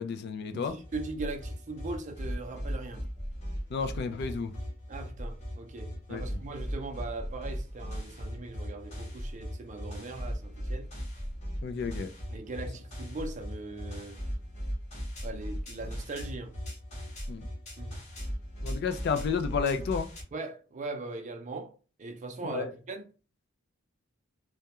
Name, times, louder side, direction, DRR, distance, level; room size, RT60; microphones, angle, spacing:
voice 1, 0.0-0.8 3.7-4.5 6.1-6.4 11.6-12.1 17.3-17.4 18.6-20.1 22.5-22.7, left 5 dB, 55° left, 0.3 m, -31 dB
voice 2, 0.5-3.0 4.9-10.9 12.3-14.2 15.2-16.5 17.8-17.9 20.3-23.1, right 3 dB, 35° right, 0.4 m, -40 dB
sound 1, 0.7-20.2, equal, 35° left, 0.8 m, -38 dB
2.3 x 2.1 x 2.9 m
head